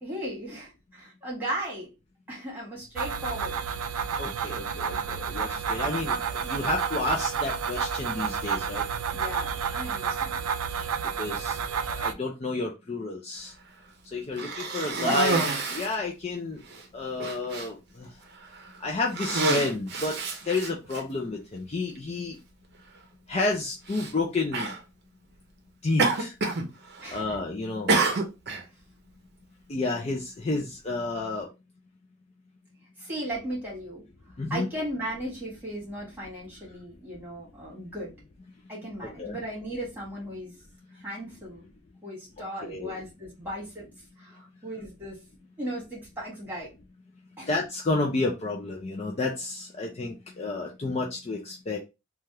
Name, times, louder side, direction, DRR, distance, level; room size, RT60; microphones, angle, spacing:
voice 1, 0.0-1.9 2.3-3.6 9.1-10.4 15.0-15.2 27.0-27.4 33.0-34.0 34.5-38.1 38.7-40.5 40.9-41.7 42.0-43.9 44.2-45.2 45.6-46.7 47.4-47.5, right 1 dB, 10° right, 1.6 m, -36 dB
sound 1, 3.0-12.1, right 6 dB, 90° right, 0.4 m, -30 dB
voice 2, 4.2-8.8 11.2-11.6 12.0-13.5 14.1-16.6 16.9-18.1 18.8-20.2 20.5-22.4 23.3-24.7 25.8-26.3 27.1-27.9 29.7-31.5 34.4-34.7 39.0-39.4 42.6-42.9 47.5-51.8, left 3 dB, 30° left, 0.4 m, -30 dB
Cough, 14.3-16.0 16.7-16.8 17.2-17.7 18.4-18.7 19.1-21.0 22.0-22.1 23.9-24.1 24.5-24.8 26.0-26.7 26.9-27.4 27.9-28.6, right 3 dB, 50° right, 0.6 m, -28 dB
3.3 x 2.3 x 2.7 m
head